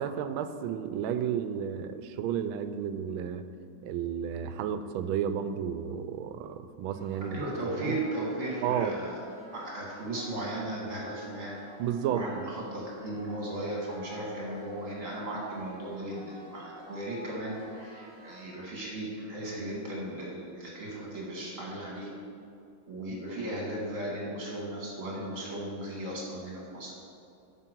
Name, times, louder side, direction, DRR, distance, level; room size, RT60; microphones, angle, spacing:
voice 1, 0.0-3.5 3.8-7.4 7.8-8.0 8.6-8.9 11.8-12.3, right 8 dB, 85° right, 11 dB, 1.4 m, -32 dB
sound 1, 6.9-18.9, right 1 dB, 30° left, 2.6 m, -50 dB
voice 2, 7.3-9.1 9.5-11.5 12.1-22.1 22.9-26.9, right 1 dB, 40° right, -4 dB, 2.1 m, -36 dB
11.0 x 6.5 x 4.5 m, 2.6 s
omnidirectional pair, 2.2 m